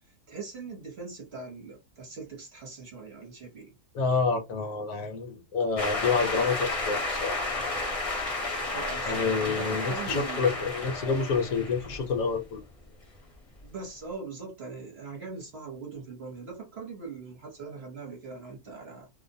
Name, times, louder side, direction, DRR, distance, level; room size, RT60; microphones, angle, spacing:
voice 1, 0.3-3.7 8.7-10.5 13.6-19.1, right 4 dB, 50° right, 0.9 m, -41 dB
voice 2, 3.9-7.3 9.1-12.6, left 4 dB, 70° left, 1.0 m, -28 dB
sound 1, 5.8-12.6, left 2 dB, 30° left, 0.7 m, -32 dB
2.6 x 2.1 x 2.6 m
omnidirectional pair, 1.6 m